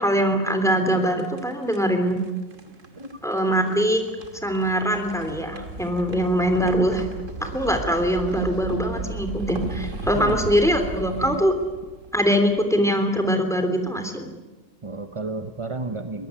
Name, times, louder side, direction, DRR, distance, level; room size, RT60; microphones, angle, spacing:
voice 1, 0.0-2.2 3.2-4.0 4.4-7.1 7.4-11.5 12.1-14.3, equal, ahead, 6 dB, 3.0 m, -22 dB
sound 1, 0.8-12.9, right 2 dB, 45° right, 2.4 m, -36 dB
voice 2, 14.8-16.3, right 2 dB, 25° right, 7 dB, 0.7 m, -32 dB
23.0 x 18.0 x 9.8 m, 1.2 s
omnidirectional pair, 1.9 m